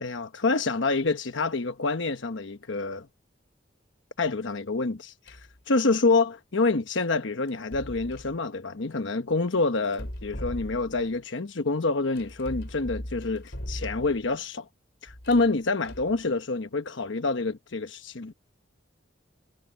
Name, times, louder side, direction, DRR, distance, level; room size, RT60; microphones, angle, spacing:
voice 1, 0.0-3.1 4.2-5.4 5.7-14.7 15.0-18.3, left 3 dB, 85° left, 1.0 m, -27 dB
sound 1, 5.3-5.6 7.5-8.4 9.8-11.2 12.2-14.3 15.1-16.2, equal, 65° left, 4.5 m, -39 dB
head